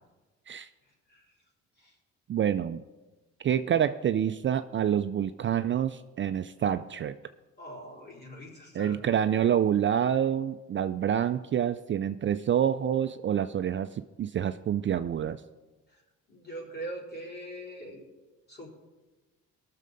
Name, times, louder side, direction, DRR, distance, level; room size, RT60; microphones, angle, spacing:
voice 1, 0.8-1.2 1.8-1.9 7.6-9.2 15.9-16.0 16.3-18.1 18.5-18.7, right 1 dB, 35° left, -3 dB, 4.3 m, -42 dB
voice 2, 2.3-2.8 3.4-7.1 8.8-15.4, right 9 dB, 40° right, 11 dB, 0.4 m, -27 dB
18.5 x 6.6 x 4.0 m, 1.2 s
cardioid pair, 90°, 30 cm